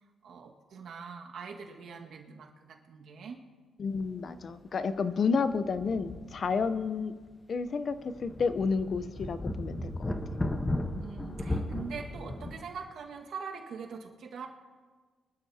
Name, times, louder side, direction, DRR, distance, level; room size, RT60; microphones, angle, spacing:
voice 1, 0.2-3.4 11.0-14.5, right 5 dB, 65° right, 1 dB, 1.7 m, -43 dB
voice 2, 3.8-7.1 7.5-10.1, left 5 dB, 45° left, 12 dB, 0.7 m, -30 dB
sound 1, 3.9-4.1 4.5-4.6 5.5-6.9 7.3-7.4 7.9-12.6, left 1 dB, 20° left, 1.1 m, -36 dB
23.5 x 12.5 x 2.8 m, 1.4 s
cardioid pair, 90°, 0 cm